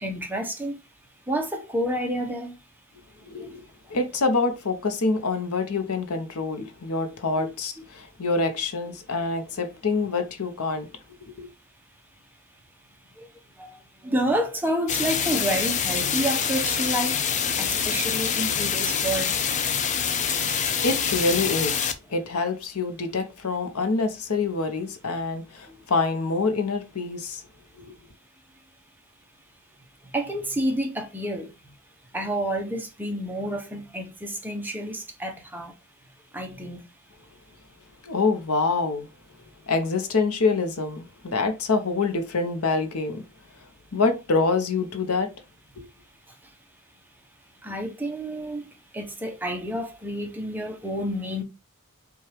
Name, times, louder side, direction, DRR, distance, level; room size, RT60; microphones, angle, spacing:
voice 1, 0.0-0.8 1.3-2.5 3.4-3.5 7.4-7.5 13.2-13.3 13.6-19.4 30.1-31.5 32.1-35.7 36.3-36.9 47.6-48.7 48.9-51.4, right 1 dB, 10° right, 0.7 m, -29 dB
voice 2, 3.2-3.6 3.9-10.9 11.4-11.5 20.2-20.4 20.8-27.4 27.8-27.9 38.0-39.1 39.7-43.2 43.9-45.3 45.8-45.9, left 3 dB, 70° left, 0.8 m, -26 dB
sound 1, 14.9-21.9, left 7 dB, 35° left, 0.4 m, -25 dB
5.5 x 2.4 x 3.3 m
head